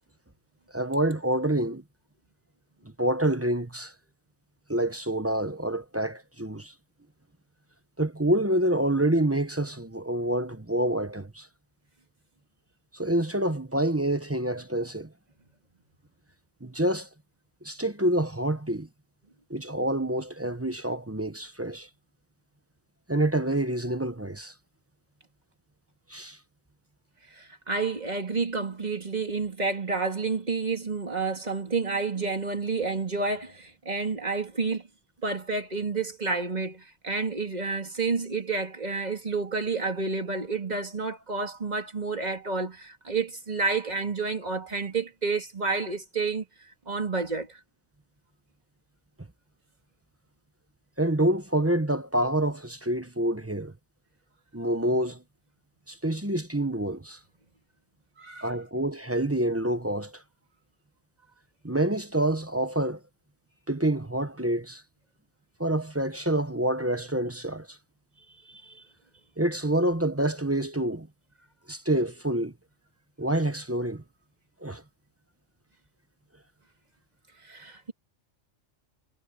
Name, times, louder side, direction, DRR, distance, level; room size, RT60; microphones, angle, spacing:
voice 1, 0.7-1.8 3.0-3.9 4.7-6.7 8.0-11.5 12.9-15.1 16.6-17.1 17.6-18.9 19.5-21.9 23.1-24.5 26.1-26.4 51.0-53.7 54.5-55.2 55.9-57.2 58.4-60.2 61.6-63.0 63.7-64.8 65.6-67.8 69.4-71.1 71.7-72.5 73.2-74.0 74.6-74.8, right 1 dB, 10° right, 0.9 m, -27 dB
voice 2, 27.4-34.8 35.2-46.4 46.9-47.6 58.2-58.5 68.5-68.8 77.4-77.9, right 4 dB, 35° right, 2.7 m, -30 dB
omnidirectional pair, 1.3 m